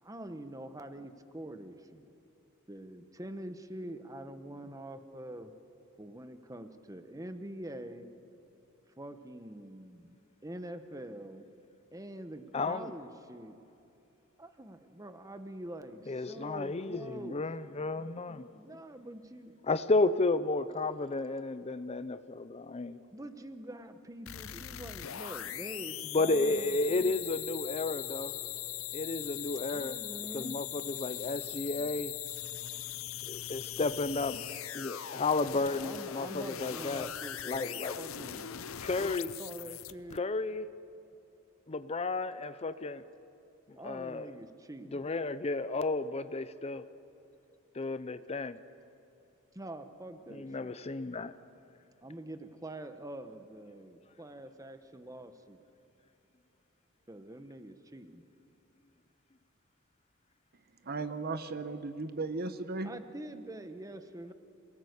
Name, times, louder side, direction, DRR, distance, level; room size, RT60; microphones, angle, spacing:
voice 1, 0.0-2.1 2.7-5.5 6.0-8.1 9.0-11.5 11.9-13.6 14.4-17.4 18.5-19.6 23.1-27.2 29.6-30.6 35.4-38.5 39.0-40.2 43.7-45.1 49.5-50.8 52.0-55.6 57.1-58.3 62.8-64.3, right 1 dB, 15° right, 9 dB, 1.1 m, -45 dB
voice 2, 12.5-12.9 16.1-18.5 19.7-23.0 26.1-28.4 28.9-30.0 30.3-32.1 33.3-34.4 34.7-37.1 37.5-38.0 38.8-39.3 40.1-40.7 41.7-43.1 43.8-44.3 44.9-46.9 47.7-48.6 50.3-51.3, left 3 dB, 30° left, 13 dB, 0.6 m, -32 dB
sound 1, 24.3-40.2, left 12 dB, 75° left, 0.6 m, -40 dB
voice 3, 60.8-62.9, right 3 dB, 50° right, 11 dB, 1.0 m, -36 dB
28.0 x 18.5 x 8.1 m, 2.8 s
head